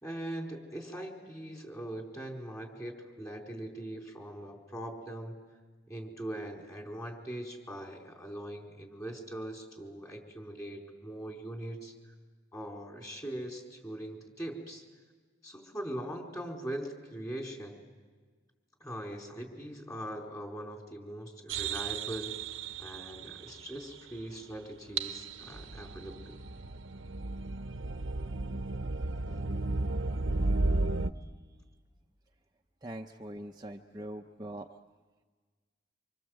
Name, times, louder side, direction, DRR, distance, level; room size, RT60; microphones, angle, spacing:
voice 1, 0.0-5.4 5.9-11.9 12.5-14.8 15.4-17.8 18.8-22.4 22.8-26.4, right 1 dB, 15° left, 1 dB, 4.3 m, -41 dB
sound 1, 21.5-24.4 24.9-31.1, right 2 dB, 80° right, 0.9 m, -34 dB
voice 2, 32.8-34.8, right 1 dB, 20° right, 2 dB, 0.7 m, -42 dB
27.5 x 26.5 x 7.9 m, 1.4 s
head